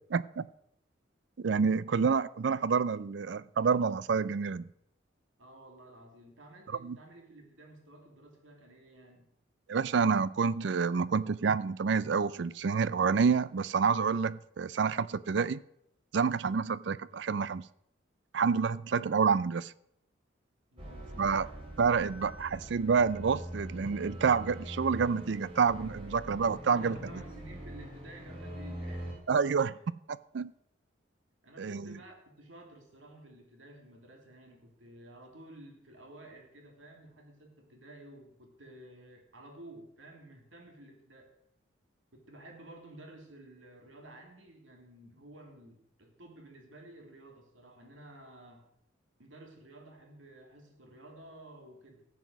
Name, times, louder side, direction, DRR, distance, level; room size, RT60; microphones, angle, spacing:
voice 1, 0.1-0.5 1.4-4.7 6.8-7.0 9.7-15.6 16.1-17.6 18.3-19.7 21.2-21.5 21.8-27.0 29.3-29.8 30.1-30.5 31.6-32.0, right 5 dB, 60° right, 19 dB, 0.4 m, -28 dB
voice 2, 5.4-9.3 20.7-21.6 26.7-29.2 29.7-29.8 31.4-41.3 42.1-48.7 49.2-52.1, right 1 dB, 80° right, 2 dB, 2.8 m, -52 dB
sound 1, 20.8-29.1, equal, 30° right, 3.0 m, -43 dB
13.5 x 8.0 x 6.2 m, 0.75 s
head